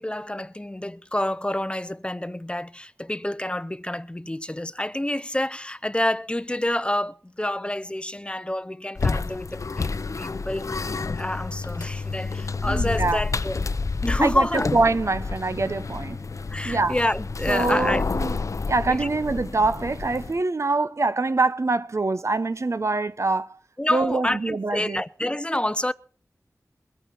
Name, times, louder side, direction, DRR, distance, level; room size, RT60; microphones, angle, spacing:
voice 1, 0.0-10.7 11.2-13.7 14.0-14.8 16.5-18.0 18.9-19.1 23.8-25.9, left 1 dB, 20° left, 0.7 m, -28 dB
sound 1, 9.0-20.4, left 4 dB, 65° left, 0.6 m, -29 dB
voice 2, 12.6-13.2 14.2-16.2 16.6-17.0 17.5-18.3 18.7-23.6 23.9-25.0, right 3 dB, 55° right, 0.8 m, -24 dB
22.0 x 9.1 x 4.5 m
wide cardioid pair, 55°, 6 cm